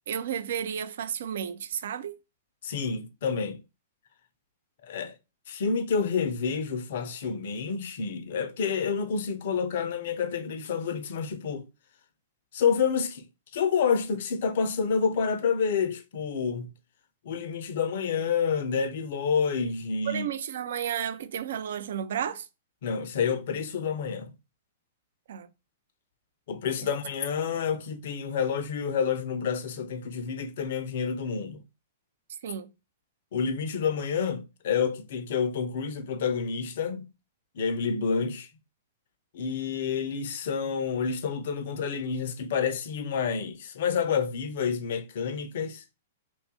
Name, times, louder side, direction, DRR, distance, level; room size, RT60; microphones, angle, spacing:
voice 1, 0.1-2.2 20.1-22.5 25.3-25.5 32.4-32.7, right 9 dB, 60° right, 0.3 m, -32 dB
voice 2, 2.6-3.6 4.8-5.1 5.5-11.6 12.5-13.2 13.5-16.7 17.2-20.3 22.8-24.3 26.5-31.6 33.3-37.1 37.5-38.5 39.3-45.8, left 6 dB, 55° left, 0.5 m, -29 dB
2.6 x 2.4 x 3.6 m
figure-of-eight pair, 105°, 0 cm